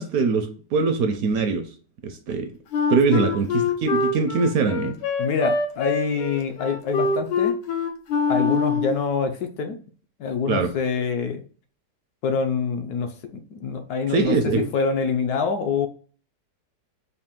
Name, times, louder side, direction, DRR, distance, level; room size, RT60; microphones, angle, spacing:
voice 1, 0.0-1.7 2.0-2.5 2.9-5.0 10.5-10.7 14.1-14.7, right 4 dB, 70° right, 0.9 m, -22 dB
Wind instrument woodwind instrument, 2.7-9.0, left 4 dB, 90° left, 1.4 m, -24 dB
voice 2, 5.2-7.6 8.3-9.8 10.2-11.4 12.2-15.9, left 5 dB, 70° left, 1.0 m, -25 dB
4.1 x 2.5 x 3.6 m
omnidirectional pair, 1.8 m